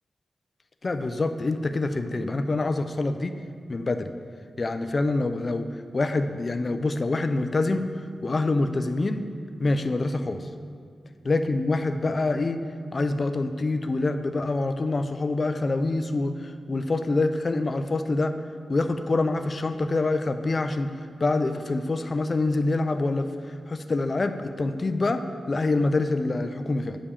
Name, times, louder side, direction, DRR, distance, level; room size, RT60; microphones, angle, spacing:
voice 1, 0.8-3.4 3.7-4.1 4.6-7.9 8.2-9.2 9.6-10.5 11.2-12.6 12.9-18.3 18.7-20.9 21.2-27.0, left 2 dB, 35° left, 8 dB, 0.4 m, -26 dB
7.3 x 5.0 x 7.1 m, 2.1 s
wide cardioid pair, 155°, 0 cm